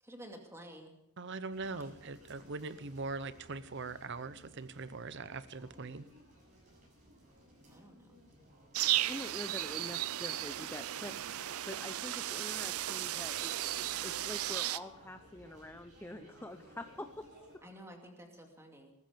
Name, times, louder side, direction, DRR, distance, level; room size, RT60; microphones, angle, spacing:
voice 1, 0.0-0.9 7.6-8.2 17.6-18.9, equal, 10° right, 3 dB, 2.5 m, -51 dB
voice 2, 1.2-6.1, right 3 dB, 55° right, 15 dB, 0.8 m, -41 dB
sound 1, 1.5-17.6, right 1 dB, 35° right, 7.3 m, -58 dB
sound 2, 8.7-14.8, right 13 dB, 85° right, 0.5 m, -35 dB
voice 3, 9.1-13.5 14.0-17.2 17.5-17.6, left 1 dB, 10° left, 8 dB, 0.6 m, -46 dB
19.0 x 14.5 x 5.2 m, 0.78 s
head